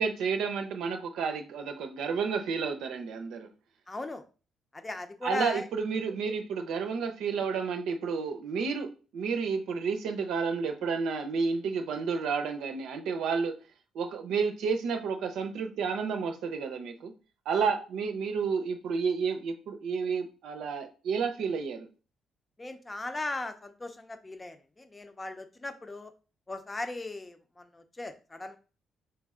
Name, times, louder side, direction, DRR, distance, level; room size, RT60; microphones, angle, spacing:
voice 1, 0.0-3.5 5.2-13.6 13.9-17.1 17.5-21.9, right 5 dB, 85° right, 0.6 m, -31 dB
voice 2, 3.9-4.3 4.7-5.7 17.5-17.7 22.6-26.1 26.5-28.6, left 2 dB, 20° left, 0.6 m, -38 dB
4.5 x 3.2 x 3.6 m
cardioid pair, 90°, 0 cm